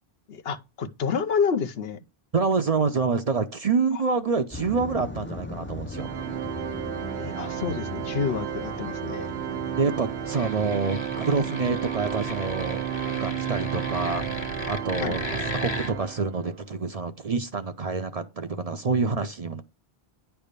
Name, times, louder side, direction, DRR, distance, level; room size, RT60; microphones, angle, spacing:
voice 1, 0.3-2.0 7.1-9.3 15.0-15.1, left 6 dB, 75° left, 1.0 m, -28 dB
voice 2, 2.3-6.1 9.8-12.8 13.2-14.2 14.7-19.6, right 4 dB, 45° right, 0.6 m, -27 dB
sound 1, 4.5-10.8, left 3 dB, 15° left, 0.4 m, -39 dB
Organ, 5.9-16.6, right 10 dB, 85° right, 1.0 m, -32 dB
sound 2, 10.3-15.9, left 2 dB, 40° left, 1.2 m, -36 dB
9.8 x 3.4 x 6.6 m
omnidirectional pair, 1.1 m